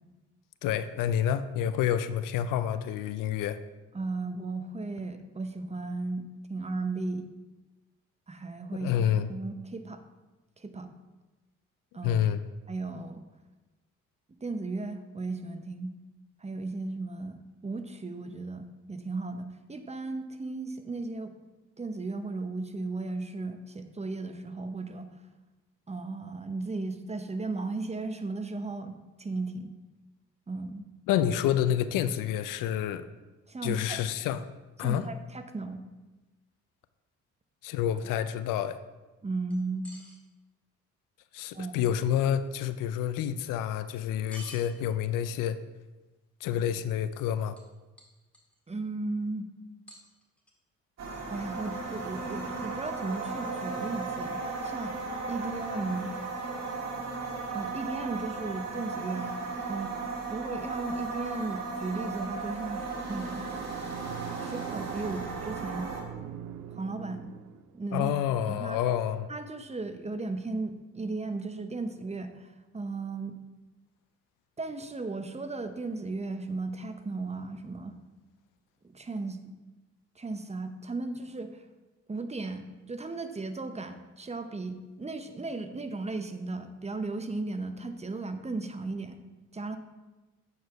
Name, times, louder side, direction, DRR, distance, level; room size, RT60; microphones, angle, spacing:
voice 1, 0.6-3.6 8.8-9.3 12.0-12.4 31.1-33.0 33.6-34.4 34.8-35.0 37.6-38.8 41.3-45.6 46.4-47.6 67.9-69.3, left 10 dB, 80° left, 13 dB, 0.5 m, -28 dB
voice 2, 3.9-7.3 8.3-9.0 9.3-10.0 10.6-10.9 11.9-12.2 12.7-13.2 14.4-15.9 16.4-21.3 21.8-25.1 25.9-29.7 30.5-30.9 33.5-34.0 34.8-35.8 39.2-39.9 41.5-41.9 48.7-49.5 51.3-55.0 55.3-56.1 57.5-59.4 59.7-60.0 60.3-63.5 64.4-65.9 66.7-67.3 67.7-68.1 68.5-68.8 69.3-73.4 74.6-78.0 78.9-79.4 80.2-81.6 82.1-89.2 89.5-89.8, right 3 dB, 20° right, 8 dB, 0.8 m, -35 dB
sound 1, 39.5-40.2 43.0-43.1 44.3-44.7 47.2-47.3 47.6-47.7 48.0-48.6 49.9-50.5, equal, 5° left, 1.9 m, -48 dB
sound 2, 51.0-66.0, right 4 dB, 50° right, 1.9 m, -36 dB
sound 3, 62.8-67.8, right 9 dB, 75° right, 0.5 m, -42 dB
8.1 x 4.8 x 4.6 m, 1.1 s
supercardioid pair, 60°, 32 cm